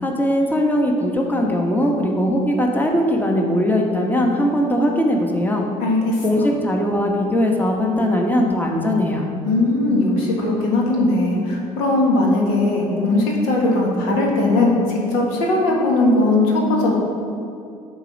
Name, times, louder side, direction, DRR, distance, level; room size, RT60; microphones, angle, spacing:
voice 1, 0.0-5.7 6.2-9.2, equal, 10° left, 1 dB, 1.1 m, -20 dB
voice 2, 5.8-6.2 9.4-17.0, left 2 dB, 80° left, -2 dB, 1.5 m, -19 dB
8.1 x 3.9 x 5.2 m, 2.6 s
hypercardioid pair, 65°, 18 cm